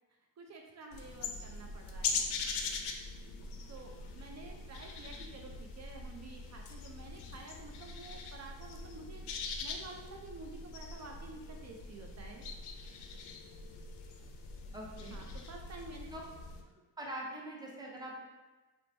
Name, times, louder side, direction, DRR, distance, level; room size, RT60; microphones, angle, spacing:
voice 1, 0.4-2.2 3.7-9.3 9.6-12.5 15.1-16.1, right 3 dB, 40° right, 1 dB, 0.4 m, -50 dB
sound 1, 0.9-16.6, left 4 dB, 65° left, 0.5 m, -42 dB
voice 2, 14.7-15.2 16.1-16.2 17.0-18.2, right 1 dB, 10° right, -3 dB, 0.7 m, -43 dB
3.0 x 2.1 x 2.7 m, 1.2 s
supercardioid pair, 50°, 44 cm